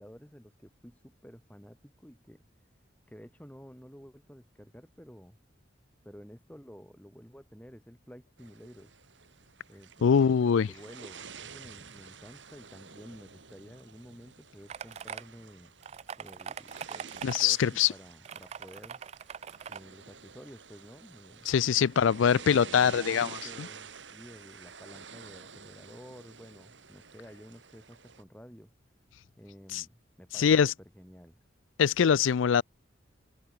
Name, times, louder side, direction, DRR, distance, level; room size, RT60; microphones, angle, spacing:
voice 1, 0.0-2.4 3.1-5.4 6.0-8.9 9.7-15.7 16.2-19.0 19.7-28.7 29.4-30.6 31.0-31.4, equal, 10° left, 5.4 m, -51 dB
sound 1, 8.4-28.2, right 6 dB, 70° right, 2.3 m, -49 dB
voice 2, 10.0-10.7 17.2-17.9 21.5-23.3 23.6-23.7 29.7-29.8 30.3-30.7 31.8-32.6, left 7 dB, 85° left, 0.4 m, -23 dB
sound 2, 14.7-15.2 15.8-17.4 18.2-19.8, right 7 dB, 35° right, 0.3 m, -41 dB
head